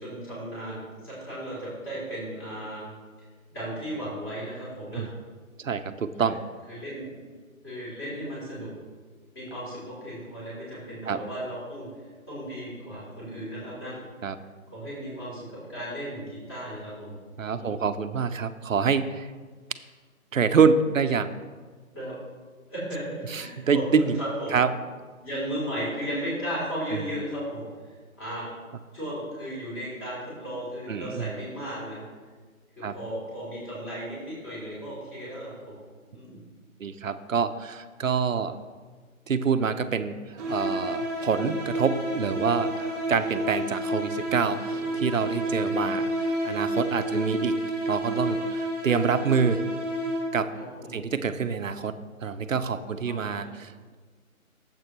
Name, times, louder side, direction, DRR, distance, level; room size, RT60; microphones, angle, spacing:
voice 1, 0.0-2.9 3.5-5.1 6.2-6.3 6.7-7.2 7.6-8.7 9.3-11.9 12.3-14.0 14.7-17.1 17.5-17.8 21.9-22.1 22.7-24.6 25.2-27.6 28.2-28.5 28.9-32.0 32.8-35.8 36.1-36.4 42.7-42.8 44.6-45.1 45.5-45.7 47.0-47.2 50.5-51.0 53.0-53.5, equal, 15° left, -8 dB, 3.2 m, -35 dB
voice 2, 5.6-6.4 11.1-11.2 14.2-14.4 17.4-19.3 20.3-21.3 23.3-24.2 24.5-24.7 26.9-27.1 30.9-31.3 32.8-32.9 36.8-38.6 39.3-42.7 43.1-47.5 47.9-49.6 50.3-50.5 50.9-53.7, right 6 dB, 65° right, 11 dB, 0.7 m, -26 dB
sound 1, 40.4-50.6, right 1 dB, 15° right, 1.2 m, -30 dB
13.5 x 7.7 x 3.1 m, 1.5 s
hypercardioid pair, 170°, 42 cm